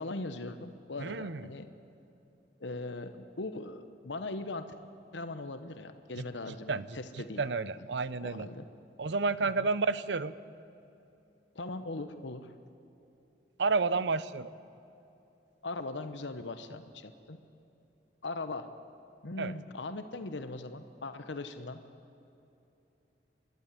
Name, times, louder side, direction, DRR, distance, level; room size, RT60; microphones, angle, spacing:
voice 1, 0.0-1.7 2.6-4.7 5.1-7.4 7.8-7.9 8.2-8.7 9.6-9.7 11.5-12.5 15.6-17.4 18.2-18.7 19.2-21.8, left 2 dB, 85° left, 9 dB, 1.0 m, -40 dB
voice 2, 1.0-1.4 6.7-6.9 7.4-8.5 9.0-10.3 13.6-14.5 19.4-19.5, right 4 dB, 75° right, 16 dB, 0.7 m, -30 dB
25.5 x 12.0 x 9.7 m, 2.9 s
head